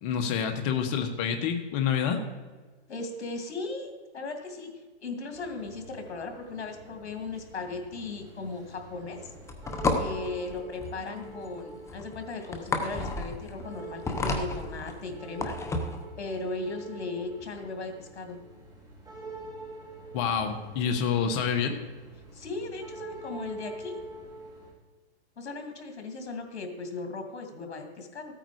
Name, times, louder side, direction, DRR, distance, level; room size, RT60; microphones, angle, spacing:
voice 1, 0.0-2.2 20.1-21.8, left 7 dB, 35° left, 6 dB, 1.3 m, -27 dB
voice 2, 2.9-4.7 5.0-9.3 10.0-15.6 16.2-18.4 22.3-24.0 25.4-28.3, left 3 dB, 80° left, 5 dB, 2.4 m, -37 dB
sound 1, 5.3-24.7, right 2 dB, 10° right, 2.6 m, -46 dB
sound 2, 9.2-16.0, left 3 dB, 10° left, 0.8 m, -32 dB
14.0 x 9.0 x 4.8 m, 1.4 s
hypercardioid pair, 140°, 33 cm